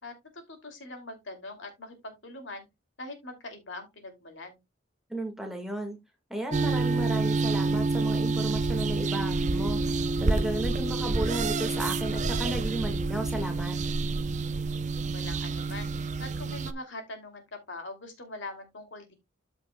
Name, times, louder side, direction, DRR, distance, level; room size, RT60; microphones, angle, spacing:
voice 1, 0.0-2.7 3.0-4.6 15.1-19.1, left 2 dB, 70° left, 2.7 m, -42 dB
voice 2, 5.1-6.0 6.3-9.8 10.2-13.8, right 1 dB, ahead, 1.6 m, -34 dB
sound 1, 6.5-16.7, right 3 dB, 35° right, 0.5 m, -28 dB
13.5 x 5.1 x 2.2 m
head